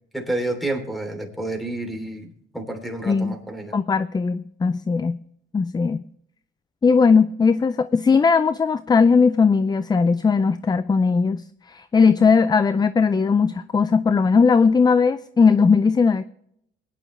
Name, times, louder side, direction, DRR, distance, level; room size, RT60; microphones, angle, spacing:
voice 1, 0.1-3.7, right 2 dB, ahead, 3.1 m, -29 dB
voice 2, 3.7-5.2 5.5-6.0 6.8-16.2, left 5 dB, 20° left, 0.4 m, -18 dB
21.5 x 10.0 x 3.2 m
cardioid pair, 90°, 20 cm